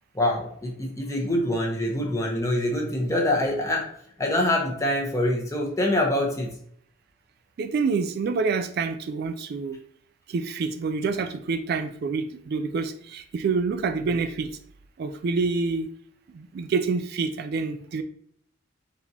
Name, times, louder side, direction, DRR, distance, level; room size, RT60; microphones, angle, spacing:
voice 1, 0.1-3.8 4.2-6.5, left 1 dB, 15° left, -1 dB, 0.9 m, -25 dB
voice 2, 7.6-9.8 10.3-14.5 15.0-15.9 16.3-18.0, right 4 dB, 50° right, 8 dB, 0.3 m, -27 dB
4.2 x 4.1 x 2.8 m, 0.64 s
head